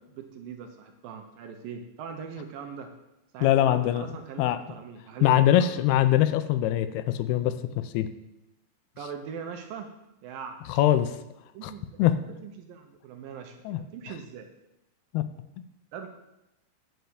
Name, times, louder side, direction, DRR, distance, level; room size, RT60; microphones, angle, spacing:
voice 1, 0.0-2.9 3.3-5.7 9.0-9.9 10.2-10.6 11.5-12.0 12.4-14.5 15.9-16.1, right 6 dB, 75° right, 5 dB, 2.4 m, -41 dB
voice 2, 3.4-4.1 4.4-4.6 5.2-8.1 10.7-11.2 11.6-11.7 12.0-12.2 13.7-13.8 15.1-15.3, left 12 dB, 85° left, 12 dB, 2.5 m, -23 dB
9.3 x 5.7 x 8.0 m, 0.92 s
omnidirectional pair, 4.5 m